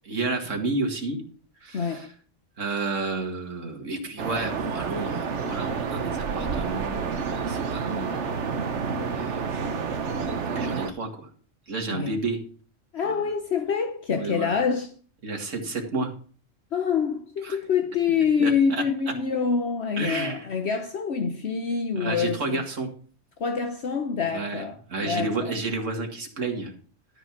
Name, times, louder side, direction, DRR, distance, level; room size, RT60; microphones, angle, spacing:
voice 1, 0.1-1.2 1.6-2.1 2.6-8.3 9.1-9.5 10.6-11.3 11.7-12.4 13.0-13.2 14.1-14.5 15.2-16.1 17.4-17.6 18.4-18.8 20.0-20.5 22.0-22.9 24.3-24.6 24.9-26.7, right 3 dB, 85° right, 2.4 m, -31 dB
voice 2, 1.7-2.1 11.9-12.1 12.9-14.9 16.7-22.6 23.4-25.5, left 6 dB, 60° left, 1.2 m, -26 dB
sound 1, 4.2-10.9, right 5 dB, 70° right, 1.3 m, -29 dB
13.0 x 5.2 x 5.9 m
omnidirectional pair, 1.3 m